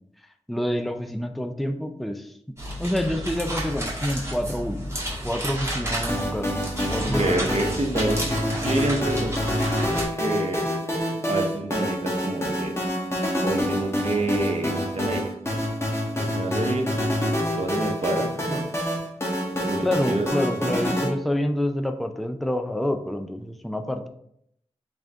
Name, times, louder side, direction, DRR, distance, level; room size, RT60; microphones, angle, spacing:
voice 1, 0.5-4.8 5.2-6.5 6.8-7.4 19.8-24.1, left 1 dB, ahead, 6 dB, 0.4 m, -27 dB
sound 1, 2.6-10.1, equal, 20° right, 1.8 m, -31 dB
sound 2, 6.1-21.1, equal, 20° left, 1.2 m, -27 dB
voice 2, 7.0-8.3 8.6-9.4 9.9-10.7 11.3-12.7 13.4-15.3 16.2-16.9 17.5-18.6 19.6-20.8, right 2 dB, 60° right, 2 dB, 0.8 m, -28 dB
3.8 x 3.5 x 3.5 m, 0.71 s
wide cardioid pair, 55°, 12 cm